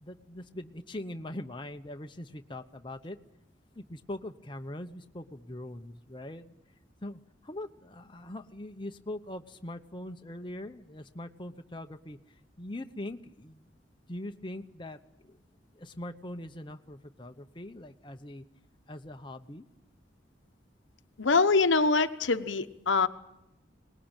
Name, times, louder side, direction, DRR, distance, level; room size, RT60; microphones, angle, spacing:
voice 1, 0.0-3.2 3.8-6.5 7.0-12.2 12.6-13.7 14.1-15.0 15.3-15.4 15.8-18.4 18.9-19.6, left 1 dB, 25° left, 6 dB, 1.0 m, -42 dB
voice 2, 21.2-23.1, left 4 dB, 90° left, 9 dB, 1.1 m, -24 dB
23.0 x 20.0 x 9.0 m, 0.87 s
head